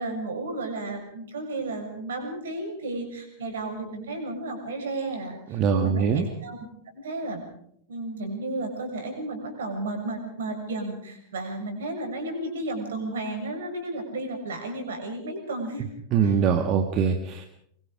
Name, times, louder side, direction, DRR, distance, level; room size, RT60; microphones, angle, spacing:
voice 1, 0.0-6.7 6.9-7.4 7.9-15.9 16.2-16.4, right 2 dB, 65° right, 4 dB, 7.0 m, -33 dB
voice 2, 5.5-6.3 16.1-17.5, right 6 dB, 35° right, 6 dB, 1.8 m, -23 dB
24.5 x 24.5 x 5.1 m, 0.69 s
figure-of-eight pair, 90°, 0 cm